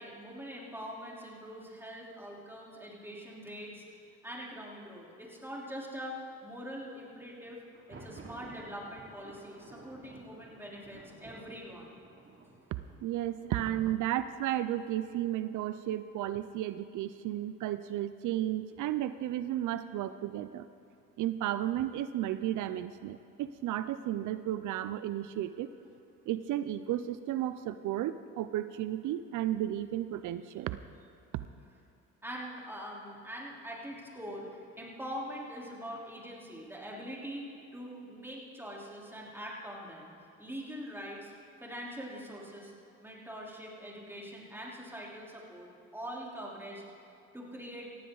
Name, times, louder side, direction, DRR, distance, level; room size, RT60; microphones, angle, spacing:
voice 1, 0.0-3.9 4.2-7.6 7.9-11.9 32.2-40.1 40.4-41.3 41.6-42.7 43.0-46.8 47.3-47.9, equal, 5° right, -4 dB, 3.6 m, -43 dB
Thunder, 7.6-15.4, right 3 dB, 40° right, 2.6 m, -54 dB
voice 2, 13.0-20.7 21.2-25.7 26.3-30.8, right 12 dB, 80° right, 12 dB, 0.5 m, -33 dB
18.0 x 15.0 x 3.9 m, 2.8 s
cardioid pair, 90°, 30 cm